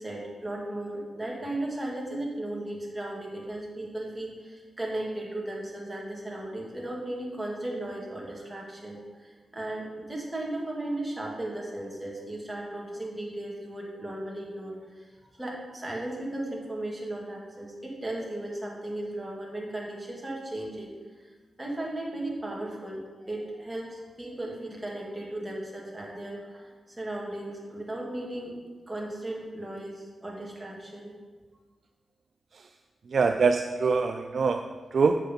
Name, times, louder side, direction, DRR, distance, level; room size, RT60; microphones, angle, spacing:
voice 1, 0.0-20.9 21.6-28.5 28.9-31.1, right 1 dB, 15° right, -3 dB, 2.3 m, -36 dB
voice 2, 33.1-35.2, right 4 dB, 60° right, 6 dB, 0.4 m, -24 dB
7.4 x 6.6 x 5.4 m, 1.4 s
wide cardioid pair, 100°, 0 cm